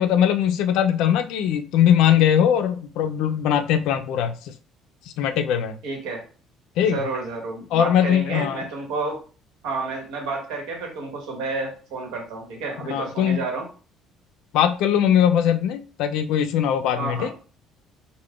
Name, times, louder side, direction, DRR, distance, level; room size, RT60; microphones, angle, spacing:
voice 1, 0.0-4.5 5.2-5.8 6.8-7.0 7.7-8.6 12.9-13.4 14.5-17.3, left 9 dB, 70° left, 0.3 m, -20 dB
voice 2, 5.8-6.2 6.8-9.2 9.6-13.7 17.0-17.3, right 3 dB, 80° right, 1.0 m, -30 dB
3.4 x 2.1 x 2.3 m
cardioid pair, 175°, 0 cm